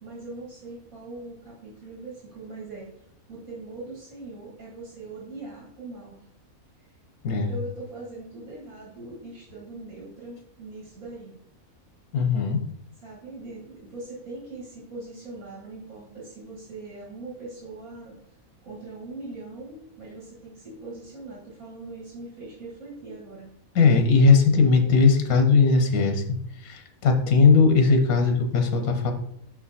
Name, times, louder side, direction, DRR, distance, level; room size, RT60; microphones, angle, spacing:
voice 1, 0.0-2.9 3.3-6.3 7.3-11.4 13.0-18.2 18.6-23.5, right 2 dB, 70° right, -4 dB, 2.1 m, -41 dB
voice 2, 12.1-12.7 23.7-26.2 26.6-29.1, left 4 dB, 85° left, 4 dB, 1.4 m, -19 dB
5.8 x 4.9 x 4.1 m, 0.71 s
omnidirectional pair, 1.5 m